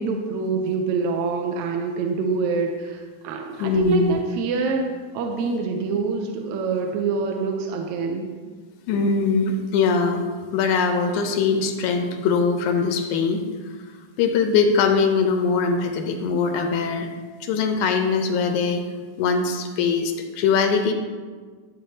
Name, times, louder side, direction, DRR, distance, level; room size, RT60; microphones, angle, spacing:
voice 1, 0.0-8.3, right 4 dB, 75° right, 2 dB, 1.9 m, -25 dB
voice 2, 3.6-4.2 8.9-10.3 10.5-13.5 14.2-17.1 17.4-18.9 19.2-20.9, left 5 dB, 80° left, 5 dB, 2.1 m, -21 dB
12.0 x 7.6 x 2.8 m, 1.5 s
omnidirectional pair, 3.7 m